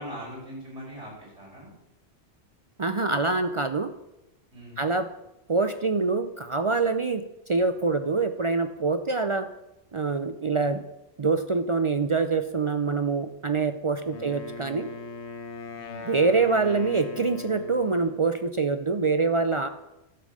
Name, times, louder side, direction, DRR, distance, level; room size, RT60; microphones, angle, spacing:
voice 1, 0.0-1.7 4.5-4.8 14.1-14.3 15.7-16.1, equal, 75° right, -5 dB, 5.5 m, -41 dB
voice 2, 2.8-3.9 4.8-5.1 5.5-7.2 7.5-9.5 9.9-10.8 11.2-14.9 16.0-19.7, right 4 dB, 55° right, 9 dB, 0.3 m, -25 dB
Wind instrument woodwind instrument, 14.1-18.3, left 4 dB, 70° left, 1.2 m, -40 dB
11.5 x 7.3 x 6.2 m, 0.92 s
omnidirectional pair, 1.2 m